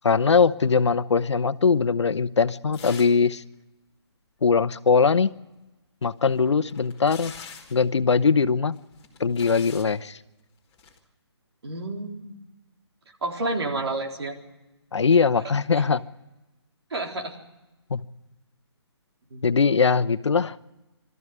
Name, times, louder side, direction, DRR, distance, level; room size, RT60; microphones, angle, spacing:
voice 1, 0.0-3.4 4.4-5.3 6.0-7.3 7.7-8.8 9.2-10.2 14.9-16.0 17.9-18.0 19.4-20.5, left 5 dB, 90° left, 15 dB, 0.9 m, -21 dB
sound 1, 2.7-3.3 3.5-3.6 6.0-7.8 8.7-9.9 10.7-11.0, left 6 dB, 15° left, 2.2 m, -44 dB
voice 2, 11.6-12.4 13.2-14.4 16.9-17.3 19.3-19.5, right 2 dB, 65° right, 1 dB, 3.8 m, -30 dB
22.0 x 13.5 x 9.5 m, 1.0 s
hypercardioid pair, 165°, 14 cm